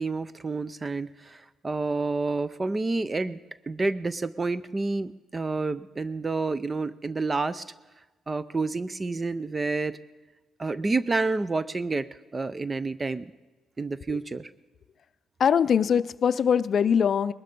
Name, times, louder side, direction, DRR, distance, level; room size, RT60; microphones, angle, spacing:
voice 1, 0.0-3.4 3.7-7.6 8.3-10.0 10.6-12.1 12.3-13.3 13.8-14.5, right 3 dB, 25° right, 16 dB, 0.5 m, -29 dB
voice 2, 15.4-17.3, left 7 dB, 55° left, 15 dB, 0.5 m, -22 dB
20.5 x 13.0 x 5.3 m, 1.2 s
cardioid pair, 90°, 0 cm